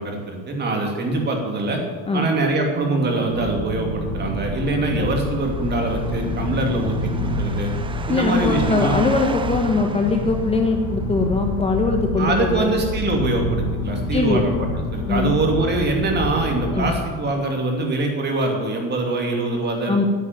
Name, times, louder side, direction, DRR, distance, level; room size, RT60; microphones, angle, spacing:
voice 1, 0.0-1.8 2.1-7.7 8.1-9.0 12.2-20.1, right 2 dB, 30° right, 2 dB, 2.7 m, -23 dB
Bass guitar, 2.7-9.0, right 13 dB, 55° right, 1.1 m, -37 dB
sound 1, 3.3-17.0, left 2 dB, 50° left, 1.8 m, -27 dB
sound 2, 4.9-11.0, right 5 dB, 15° right, 0.5 m, -35 dB
voice 2, 8.1-12.8 14.1-14.4 15.1-15.4 16.7-16.9 19.9-20.0, left 3 dB, 15° left, 3 dB, 1.1 m, -21 dB
10.0 x 8.3 x 9.3 m, 1.5 s
cardioid pair, 135°, 33 cm